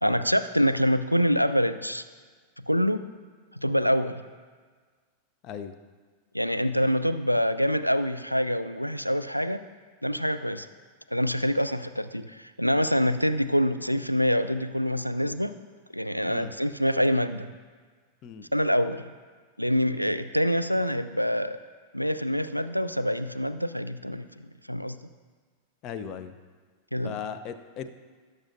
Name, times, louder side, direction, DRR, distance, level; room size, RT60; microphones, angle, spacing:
voice 1, 0.0-2.0 2.7-3.0 3.6-4.1 6.3-9.6 10.0-10.7 11.1-15.5 15.9-17.5 18.5-19.1 19.6-21.6 21.9-24.3 24.7-25.0 26.9-27.2, equal, 90° left, 11 dB, 0.3 m, -25 dB
voice 2, 25.8-26.3 27.0-27.9, left 7 dB, 35° left, 10 dB, 0.6 m, -37 dB
17.0 x 6.6 x 2.6 m, 1.5 s
figure-of-eight pair, 90°, 0 cm